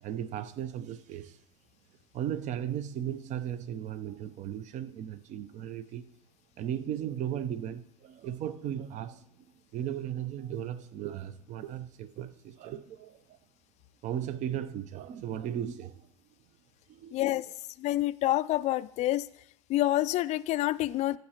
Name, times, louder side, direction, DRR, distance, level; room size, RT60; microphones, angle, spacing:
voice 1, 0.0-1.4 2.1-6.1 6.6-9.2 9.7-13.4 14.0-16.0 16.9-17.5, right 10 dB, 40° right, 0.6 m, -36 dB
voice 2, 17.1-17.5 17.8-19.2 19.7-21.2, left 15 dB, 40° left, 0.4 m, -27 dB
13.5 x 7.7 x 2.9 m
hypercardioid pair, 90°, 18 cm